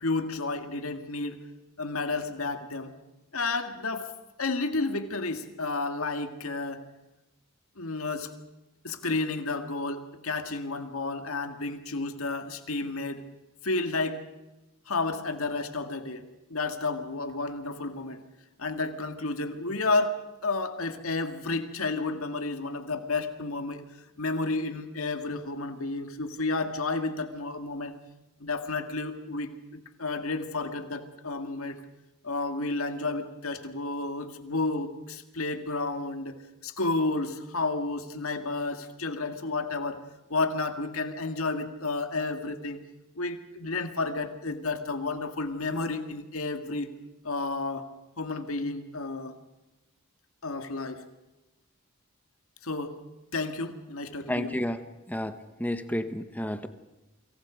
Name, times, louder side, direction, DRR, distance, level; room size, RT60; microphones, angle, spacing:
voice 1, 0.0-1.4 1.8-2.9 3.3-4.1 4.4-6.8 7.8-8.3 8.8-13.2 13.6-14.2 14.9-16.2 16.5-18.2 18.6-20.2 20.4-23.8 24.2-27.9 28.4-31.8 32.2-40.0 40.3-42.8 43.2-46.9 47.2-47.9 48.2-49.4 50.4-51.0 52.6-53.0 53.3-54.5, left 3 dB, 70° left, 8 dB, 2.0 m, -31 dB
voice 2, 54.3-54.8 55.1-56.7, left 1 dB, 5° left, 10 dB, 1.2 m, -31 dB
28.5 x 25.5 x 5.1 m, 1.0 s
head